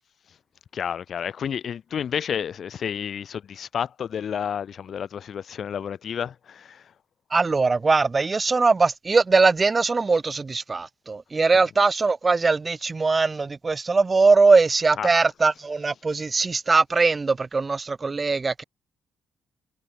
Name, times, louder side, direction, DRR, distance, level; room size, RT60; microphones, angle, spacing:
voice 1, 0.7-6.9 15.0-15.3, left 8 dB, 55° left, 0.4 m, -31 dB
voice 2, 7.3-18.6, right 4 dB, 30° right, 0.4 m, -21 dB
cardioid pair, 90°, 0 cm